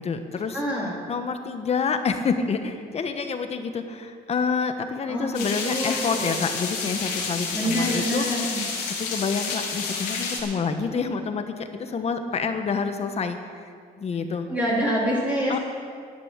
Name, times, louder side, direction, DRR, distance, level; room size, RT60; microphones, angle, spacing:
voice 1, 0.0-0.6 1.1-8.3 9.0-13.4 14.0-14.5 15.5-15.6, left 5 dB, 40° left, 7 dB, 1.2 m, -28 dB
voice 2, 0.5-0.9 5.1-6.3 7.5-8.6 14.5-15.6, equal, 10° right, -7 dB, 3.0 m, -26 dB
sound 1, 5.3-10.4, left 5 dB, 90° left, 3.2 m, -30 dB
10.5 x 10.5 x 7.3 m, 2.2 s
cardioid pair, 110°, 17 cm